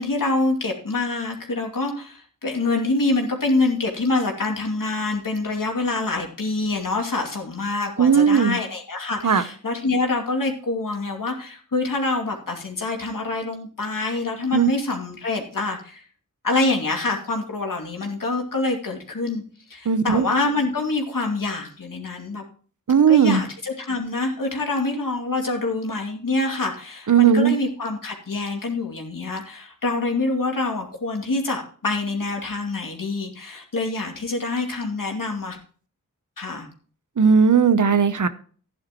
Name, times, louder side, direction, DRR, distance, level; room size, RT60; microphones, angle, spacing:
voice 1, 0.0-16.0 16.4-19.4 19.7-22.4 23.1-35.6 36.4-36.7, left 3 dB, 70° left, 2 dB, 2.6 m, -26 dB
voice 2, 8.0-8.6 9.2-9.4 14.5-14.7 19.9-20.2 22.9-23.4 27.1-27.5 37.2-38.3, right 6 dB, 60° right, 12 dB, 0.9 m, -17 dB
13.0 x 10.5 x 3.1 m, 0.43 s
cardioid pair, 55°, 34 cm